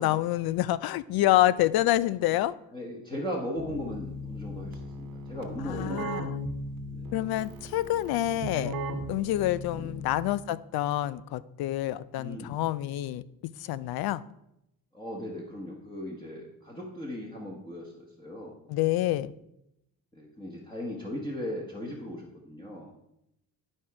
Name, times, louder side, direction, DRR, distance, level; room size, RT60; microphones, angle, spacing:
voice 1, 0.0-2.5 5.7-6.3 7.1-8.7 9.1-14.2 18.7-19.3, left 14 dB, 85° left, 18 dB, 0.5 m, -27 dB
voice 2, 2.7-6.2 6.9-7.2 9.7-9.9 12.2-12.6 14.9-18.5 20.1-22.9, left 1 dB, 15° left, -3 dB, 1.4 m, -38 dB
Keyboard (musical), 3.5-10.4, equal, 70° right, 1.1 m, -37 dB
11.0 x 4.5 x 4.8 m, 0.81 s
cardioid pair, 115°, 36 cm